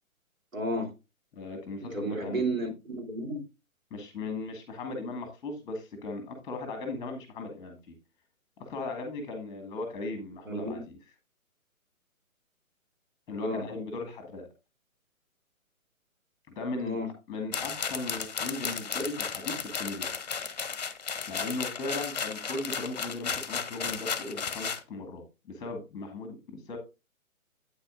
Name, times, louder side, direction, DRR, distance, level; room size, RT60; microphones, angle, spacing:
voice 1, 0.5-0.9 1.8-3.4 10.4-10.8 13.4-13.6 16.8-17.1, right 1 dB, 70° right, 2 dB, 3.2 m, -32 dB
voice 2, 1.3-2.4 3.9-7.9 8.6-11.0 13.3-14.5 16.5-17.0 17.3-20.1 21.3-26.8, left 2 dB, 10° left, 5 dB, 1.5 m, -37 dB
sound 1, 17.5-24.8, left 6 dB, 30° left, 0.8 m, -34 dB
8.8 x 8.5 x 2.4 m, 0.27 s
figure-of-eight pair, 140°, 42 cm